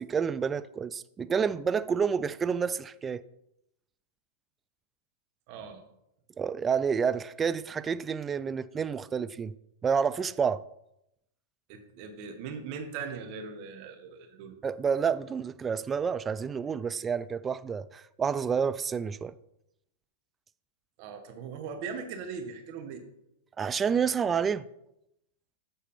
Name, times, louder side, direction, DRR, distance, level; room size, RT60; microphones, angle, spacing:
voice 1, 0.0-3.2 6.4-9.5 9.8-10.6 14.6-19.3 23.6-24.6, right 6 dB, 20° right, 0.3 m, -29 dB
voice 2, 5.5-5.8 11.7-14.5 21.0-23.0, right 5 dB, 50° right, 1.3 m, -39 dB
7.4 x 4.2 x 5.3 m
hypercardioid pair, 120°, 0 cm